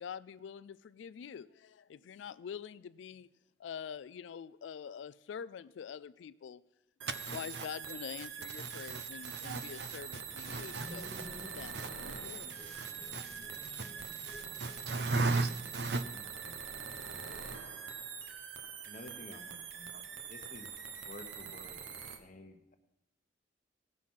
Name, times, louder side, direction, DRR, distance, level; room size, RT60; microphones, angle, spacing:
voice 1, 0.0-3.3 3.6-6.6 7.3-11.1 11.5-12.5 13.0-13.2, left 7 dB, 75° left, 0.3 m, -45 dB
sound 1, 7.0-22.2, right 6 dB, 85° right, 1.0 m, -44 dB
voice 2, 7.3-7.6 9.4-9.6 10.5-10.8 13.1-13.2 14.6-16.0, right 3 dB, 60° right, 0.7 m, -33 dB
sound 2, 10.3-15.6, equal, 10° left, 0.9 m, -52 dB
voice 3, 13.5-14.8 16.0-16.6 16.9-17.6 18.8-20.7 21.0-22.8, left 2 dB, 40° left, 1.1 m, -54 dB
17.5 x 6.3 x 5.6 m
head